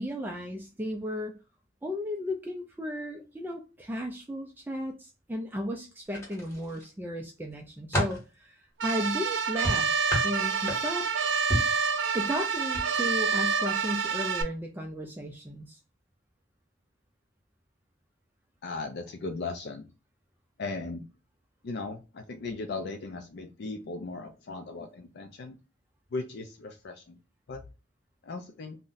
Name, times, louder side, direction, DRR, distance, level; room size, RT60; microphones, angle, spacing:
voice 1, 0.0-1.4 1.8-11.1 12.1-15.8, equal, 10° right, 2 dB, 0.3 m, -35 dB
sound 1, 6.1-6.9 7.4-8.3 9.6-11.1 11.5-11.8 12.6-12.8 13.2-13.4, equal, 15° left, 1.3 m, -31 dB
sound 2, 8.8-14.4, right 5 dB, 75° right, 0.5 m, -28 dB
voice 2, 18.6-19.9 20.6-21.1 21.6-25.6 26.1-27.2 27.5-27.6 28.2-28.8, left 3 dB, 60° left, 5 dB, 0.4 m, -37 dB
2.5 x 2.1 x 3.8 m, 0.30 s
head